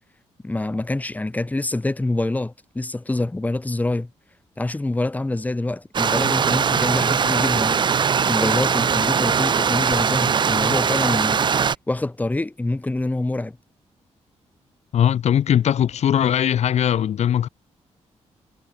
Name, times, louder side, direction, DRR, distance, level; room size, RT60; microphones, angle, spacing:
voice 1, 0.4-4.1 4.6-7.8 8.3-11.5 11.9-13.6, left 2 dB, 15° left, 1.8 m, -26 dB
Stream, 5.9-11.7, right 6 dB, 40° right, 0.7 m, -20 dB
voice 2, 14.9-17.5, left 9 dB, 70° left, 1.0 m, -20 dB
cardioid pair, 120°, 12 cm